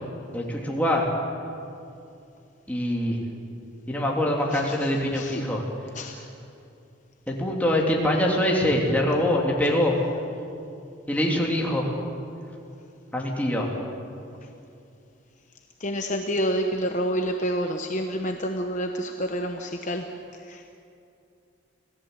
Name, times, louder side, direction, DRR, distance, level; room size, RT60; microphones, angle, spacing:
voice 1, 0.3-1.1 2.7-3.2 3.9-5.6 7.3-10.0 11.1-11.9 13.1-13.7, left 1 dB, 10° left, -2 dB, 3.1 m, -24 dB
voice 2, 4.5-5.4 5.9-6.3 15.8-20.0 20.5-20.7, equal, 40° left, 4 dB, 1.0 m, -29 dB
27.0 x 17.5 x 8.2 m, 2.6 s
head